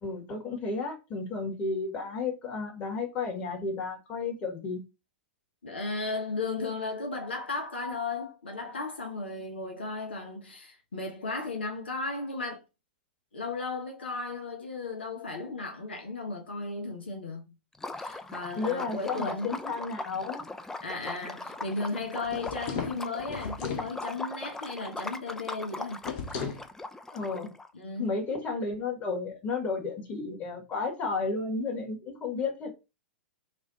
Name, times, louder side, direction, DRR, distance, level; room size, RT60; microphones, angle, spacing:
voice 1, 0.0-4.8 18.6-20.4 27.1-27.5 28.0-32.7, left 4 dB, 30° left, 1.8 m, -32 dB
voice 2, 5.6-12.6 13.3-17.4 17.9-19.5 20.8-26.0 27.7-28.1, left 3 dB, 80° left, 0.9 m, -35 dB
Liquid, 17.7-27.7, left 2 dB, 10° left, 0.4 m, -40 dB
sound 1, 22.2-23.9 26.0-26.7, left 6 dB, 50° left, 1.0 m, -35 dB
3.2 x 2.6 x 4.1 m
figure-of-eight pair, 105°, 6 cm